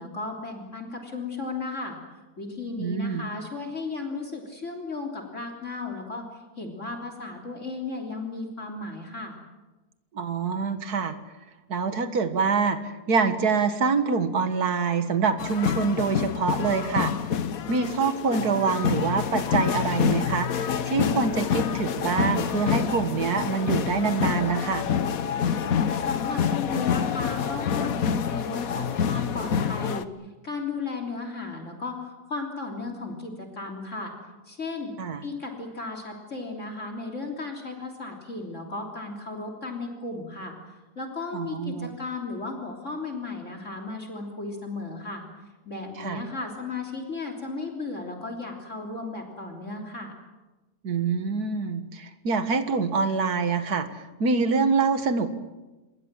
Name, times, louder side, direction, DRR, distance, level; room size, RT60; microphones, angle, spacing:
voice 1, 0.0-2.0 2.4-9.4 26.1-30.1 30.4-34.1 34.5-34.9 35.2-40.6 41.0-45.2 45.7-50.1, left 3 dB, 50° left, 4 dB, 3.6 m, -35 dB
voice 2, 2.8-3.3 10.1-11.2 11.7-17.1 17.7-24.9 35.0-35.2 41.3-41.9 46.0-46.2 50.8-53.9 54.2-55.3, right 5 dB, 75° right, 9 dB, 2.2 m, -25 dB
sound 1, 15.4-30.0, left 7 dB, 65° left, 1.4 m, -27 dB
27.5 x 21.5 x 7.5 m, 1.1 s
omnidirectional pair, 1.7 m